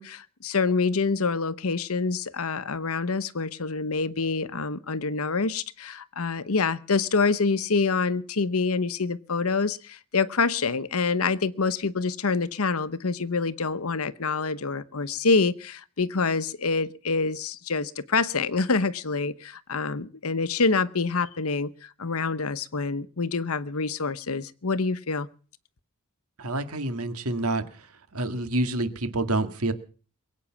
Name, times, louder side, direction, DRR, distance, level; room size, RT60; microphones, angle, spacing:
voice 1, 0.0-25.3, left 4 dB, 75° left, 15 dB, 1.0 m, -26 dB
voice 2, 26.4-27.6 28.1-29.7, right 2 dB, 80° right, 10 dB, 1.9 m, -27 dB
22.5 x 8.6 x 7.2 m, 0.41 s
head